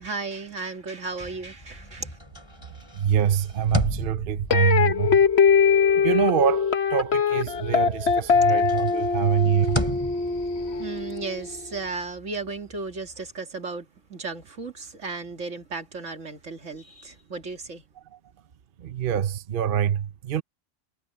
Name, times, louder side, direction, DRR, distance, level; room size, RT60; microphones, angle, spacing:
voice 1, 0.0-2.2 10.8-17.8, right 3 dB, 90° right, 2.6 m, -35 dB
sound 1, 1.1-7.6 7.9-13.3, equal, 20° left, 7.0 m, -36 dB
voice 2, 2.9-5.3 5.9-9.9 18.1-18.2 18.8-20.4, right 9 dB, 50° right, 0.9 m, -25 dB
sound 2, 4.5-11.6, left 6 dB, 60° left, 1.3 m, -22 dB
omnidirectional pair, 1.3 m